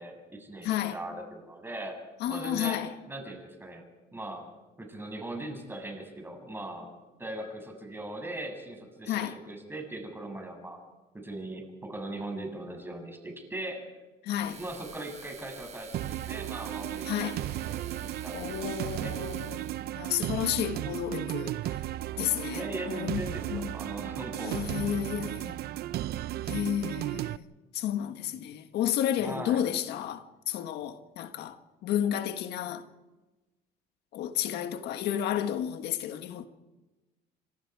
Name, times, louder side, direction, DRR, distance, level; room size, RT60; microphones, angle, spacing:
voice 1, 0.0-2.0 2.3-2.8 3.1-3.8 4.1-4.4 4.8-6.9 7.2-10.8 11.1-13.9 14.6-19.1 22.5-24.6 29.2-29.6, right 1 dB, 15° right, 7.3 m, -40 dB
voice 2, 0.6-1.0 2.2-2.9 9.1-9.4 14.2-14.6 17.1-17.4 18.3-21.6 22.2-22.6 22.9-23.2 23.5-23.7 24.4-25.6 26.5-27.4 27.7-31.6 31.8-32.8 34.1-36.5, left 10 dB, 80° left, 1.7 m, -31 dB
sound 1, 14.3-19.9, right 6 dB, 40° right, 1.6 m, -48 dB
sound 2, 15.9-27.4, right 14 dB, 70° right, 0.7 m, -35 dB
29.5 x 26.0 x 4.9 m
cardioid pair, 110°, 17 cm